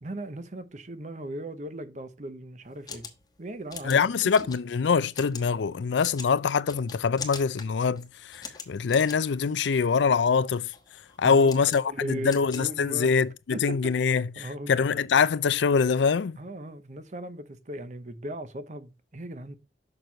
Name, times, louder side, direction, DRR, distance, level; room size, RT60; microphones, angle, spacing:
voice 1, 0.0-3.1 3.4-4.0 11.2-11.6 11.9-13.1 13.5-14.1 14.4-15.0 16.4-19.6, right 1 dB, 40° right, 0.8 m, -38 dB
sound 1, 2.6-13.3, left 6 dB, 20° left, 1.1 m, -44 dB
voice 2, 3.8-10.7 11.2-16.4, left 5 dB, 85° left, 0.4 m, -24 dB
6.6 x 6.1 x 3.9 m
head